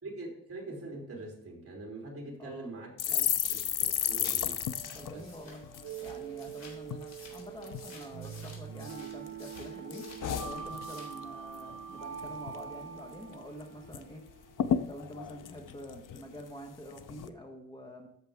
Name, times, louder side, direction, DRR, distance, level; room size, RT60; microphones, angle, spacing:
voice 1, 0.0-2.9 3.5-4.6 5.1-5.3, right 2 dB, 40° right, -1 dB, 3.4 m, -43 dB
voice 2, 2.4-2.7 3.1-3.3 4.9-5.6 6.0-10.1 10.4-14.2 14.8-18.1, equal, 15° left, 1 dB, 1.2 m, -47 dB
sound 1, 3.0-6.5 6.8-7.0 7.3-7.9 8.5-9.3 9.6-11.2 11.5-11.8 12.0-12.6 13.0-13.1 13.3-14.0 14.3-14.4 14.6-16.5 17.0-17.3, left 9 dB, 65° left, 0.7 m, -33 dB
sound 2, 4.1-10.3 10.6-11.2, left 3 dB, 50° left, 3.5 m, -53 dB
sound 3, 4.7-14.8, right 8 dB, 65° right, 1.1 m, -44 dB
14.0 x 6.5 x 3.5 m, 0.78 s
wide cardioid pair, 125°, 34 cm